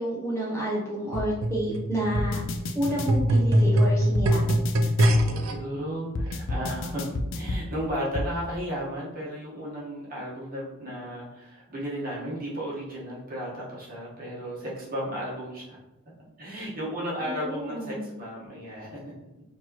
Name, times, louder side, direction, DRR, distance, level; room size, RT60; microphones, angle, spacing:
voice 1, 0.0-2.4 2.7-4.6 17.2-18.1, equal, 15° left, -6 dB, 0.7 m, -30 dB
sound 1, 1.1-1.3 2.1-3.3 4.1-5.3 6.1-7.6 8.1-8.3, left 2 dB, 65° left, 0.5 m, -31 dB
sound 2, 1.1-5.5 6.3-6.4, equal, 80° right, 0.5 m, -23 dB
voice 2, 4.8-15.8 16.4-19.1, equal, 40° right, -6 dB, 1.3 m, -34 dB
4.4 x 2.9 x 2.9 m, 0.97 s
head